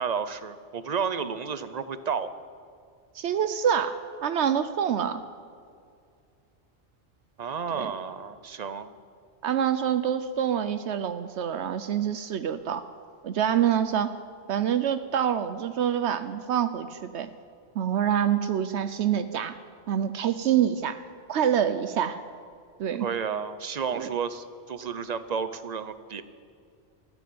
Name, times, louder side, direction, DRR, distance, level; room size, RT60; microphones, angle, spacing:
voice 1, 0.0-2.3 7.4-8.9 23.0-26.2, right 6 dB, 45° right, 13 dB, 0.7 m, -31 dB
voice 2, 3.1-4.0 4.2-5.2 7.7-7.9 9.4-12.8 13.2-14.1 14.5-17.3 17.8-19.5 19.9-21.0 21.3-22.2 22.8-23.1 23.9-24.1, right 9 dB, 75° right, 11 dB, 0.9 m, -26 dB
14.0 x 9.5 x 9.3 m, 2.3 s
omnidirectional pair, 1.2 m